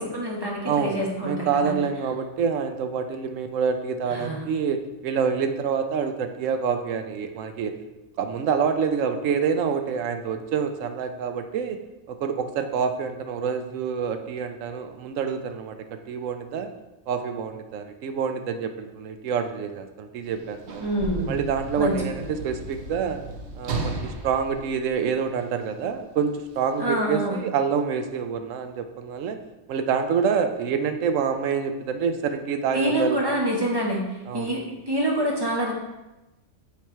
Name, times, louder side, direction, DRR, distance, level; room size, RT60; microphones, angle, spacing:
voice 1, 0.0-1.7 4.1-4.4 20.8-21.4 21.8-22.3 26.8-27.4 32.7-34.1 34.3-35.7, right 1 dB, 20° right, -2 dB, 1.0 m, -26 dB
voice 2, 0.7-7.7 8.2-11.8 12.1-16.7 17.1-20.9 21.3-23.2 23.5-29.4 29.7-33.2 34.3-34.5, right 6 dB, 90° right, 7 dB, 1.0 m, -27 dB
Sliding door / Slam, 20.2-25.6 26.5-26.7, right 2 dB, 65° right, 1.0 m, -35 dB
7.1 x 3.4 x 4.4 m, 1.0 s
omnidirectional pair, 1.3 m